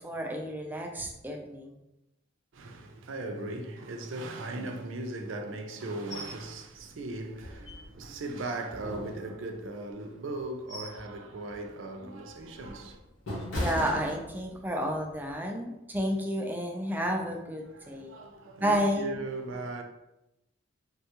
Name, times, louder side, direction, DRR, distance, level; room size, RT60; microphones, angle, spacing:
voice 1, 0.0-1.7 13.5-18.2 18.6-19.1, equal, 10° right, 0.3 m, -31 dB
voice 2, 2.5-13.0 17.7-19.8, right 2 dB, 80° right, 0.4 m, -38 dB
sound 1, 6.1-6.4 6.8-6.9 7.4-8.2 8.7-9.7 10.3-11.1 11.5-11.7 12.3-14.7 15.1-15.3, left 1 dB, 80° left, 0.9 m, -38 dB
3.5 x 2.2 x 2.8 m
head